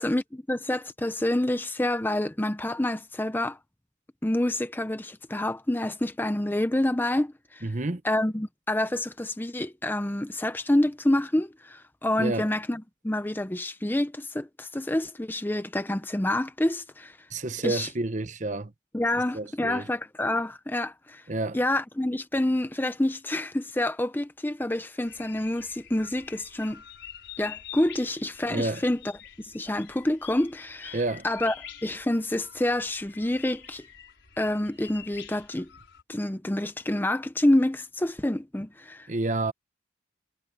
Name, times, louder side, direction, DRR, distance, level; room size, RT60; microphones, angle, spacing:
voice 1, 0.0-3.6 4.2-7.6 8.0-17.2 17.6-17.9 18.9-21.2 21.5-26.8 27.4-29.0 29.4-31.0 31.2-31.6 31.8-33.9 34.4-35.7 36.1-39.1, left 1 dB, 10° left, 0.6 m, -27 dB
voice 2, 7.6-8.0 12.2-12.5 17.3-18.7 19.3-19.9 21.3-21.6 28.5-28.8 30.9-31.3 39.1-39.5, right 2 dB, 40° right, 1.0 m, -29 dB
sound 1, 25.1-36.0, left 9 dB, 70° left, 5.5 m, -46 dB
head